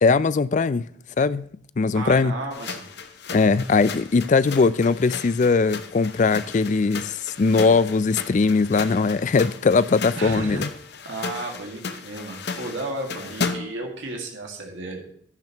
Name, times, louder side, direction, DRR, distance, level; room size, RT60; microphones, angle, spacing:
voice 1, 0.0-0.8 1.2-1.5 1.8-2.3 3.3-10.7, left 4 dB, 40° left, 0.3 m, -20 dB
voice 2, 1.9-2.9 10.2-10.6 11.0-15.1, right 2 dB, 75° right, 2.0 m, -33 dB
sound 1, 2.5-13.9, left 5 dB, 55° left, 0.8 m, -35 dB
11.5 x 10.5 x 3.0 m
head